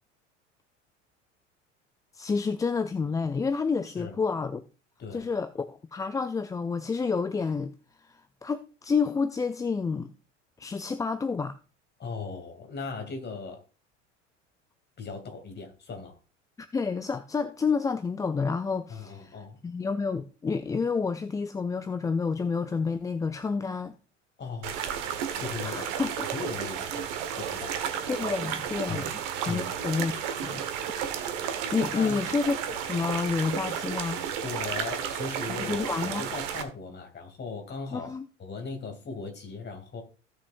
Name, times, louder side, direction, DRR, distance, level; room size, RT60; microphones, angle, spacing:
voice 1, 2.1-4.6 5.1-7.8 8.1-10.1 10.6-11.5 16.6-23.9 25.6-26.1 28.1-29.1 29.5-30.1 30.4-30.6 31.7-34.2 35.7-36.3 37.9-38.2, left 5 dB, 10° left, 0.4 m, -29 dB
voice 2, 3.8-4.2 5.0-5.3 12.0-13.6 15.0-16.2 18.9-19.6 24.4-24.8 25.4-25.9 26.3-27.8 28.9-29.1 29.5-29.7 31.9-32.3 34.4-38.1 38.4-40.0, left 4 dB, 30° left, 2.7 m, -38 dB
sound 1, 24.6-36.6, right 8 dB, 55° right, 1.5 m, -33 dB
16.0 x 6.5 x 2.6 m
figure-of-eight pair, 75°, 37 cm